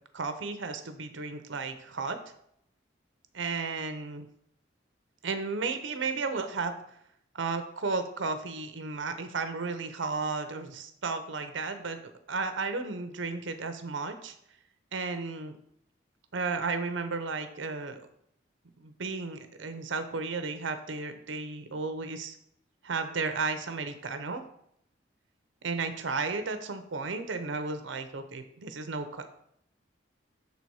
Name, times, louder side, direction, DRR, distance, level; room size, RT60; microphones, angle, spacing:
voice 1, 0.1-2.2 3.3-4.2 5.2-6.8 7.3-12.0 12.3-14.3 14.9-15.6 16.3-18.1 18.8-22.4 22.8-24.4 25.6-29.3, right 4 dB, 80° right, 8 dB, 0.7 m, -33 dB
6.7 x 4.1 x 4.7 m, 0.71 s
head